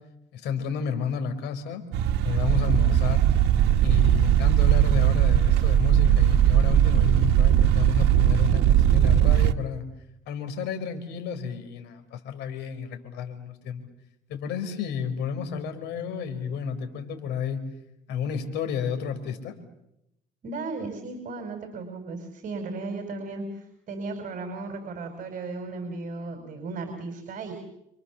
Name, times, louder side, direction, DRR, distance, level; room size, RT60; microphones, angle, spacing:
voice 1, 0.3-1.8 2.2-3.3 3.8-9.8 10.3-13.9 14.3-17.6 18.1-19.6, left 7 dB, 85° left, 8 dB, 4.9 m, -31 dB
sound 1, 1.9-9.5, right 11 dB, 85° right, 1.6 m, -19 dB
voice 2, 20.4-27.5, right 3 dB, 50° right, 5 dB, 5.2 m, -35 dB
29.5 x 26.0 x 7.2 m, 0.83 s
cardioid pair, 110°, 17 cm